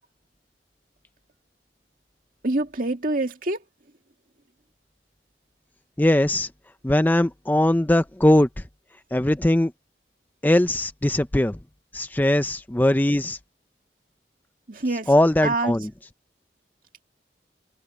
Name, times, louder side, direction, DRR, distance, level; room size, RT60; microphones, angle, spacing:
voice 1, 2.4-3.6 14.7-15.1 15.4-15.7, right 2 dB, 50° right, 2.2 m, -25 dB
voice 2, 6.0-6.5 6.8-8.5 9.1-9.7 10.4-11.6 11.9-13.4 15.1-15.9, left 1 dB, 10° left, 0.5 m, -20 dB
head